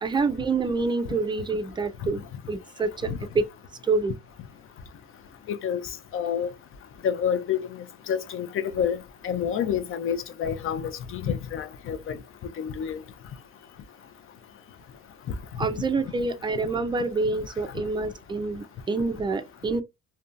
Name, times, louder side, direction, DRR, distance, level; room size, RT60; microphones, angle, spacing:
voice 1, 0.0-3.1 3.3-3.5 3.8-4.1 15.6-19.8, right 3 dB, 15° right, 0.4 m, -27 dB
voice 2, 5.5-5.8 6.1-6.5 7.0-7.6 8.1-9.0 9.2-12.2 12.6-13.0, left 8 dB, 40° left, 0.5 m, -28 dB
2.6 x 2.2 x 2.5 m
supercardioid pair, 95°, 32 cm